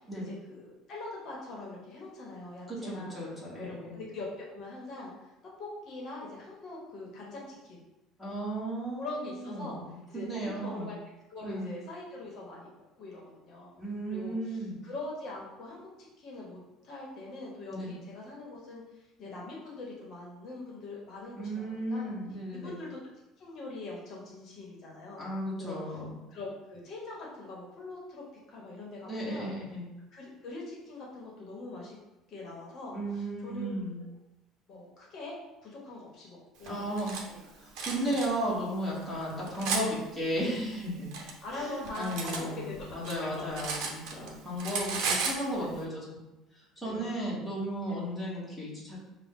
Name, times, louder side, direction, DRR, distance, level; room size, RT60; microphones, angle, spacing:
voice 1, 0.2-3.2 3.6-5.1 5.6-7.8 9.0-9.8 10.1-11.0 11.3-13.7 14.1-15.9 16.2-16.6 16.8-22.1 22.5-23.0 23.4-25.2 25.6-26.0 26.3-29.5 30.1-32.0 32.3-33.0 33.4-33.8 34.7-37.5 38.1-38.2 39.1-39.2 41.4-43.1 45.6-45.8 46.8-47.1 47.9-48.1, left 2 dB, 45° left, -3 dB, 1.0 m, -43 dB
voice 2, 2.7-4.0 8.2-10.9 11.4-11.7 13.8-14.8 17.7-17.9 21.4-22.8 25.2-26.1 29.1-29.9 32.9-34.0 36.6-37.2 37.4-49.0, right 1 dB, ahead, -8 dB, 1.2 m, -35 dB
Cutlery silverware, 36.7-37.2 37.8-38.3 39.0-39.9 40.7-42.4 42.8-44.3 44.6-45.4, right 5 dB, 70° right, 0.7 m, -34 dB
5.2 x 2.2 x 3.6 m, 0.99 s
cardioid pair, 145°, 0 cm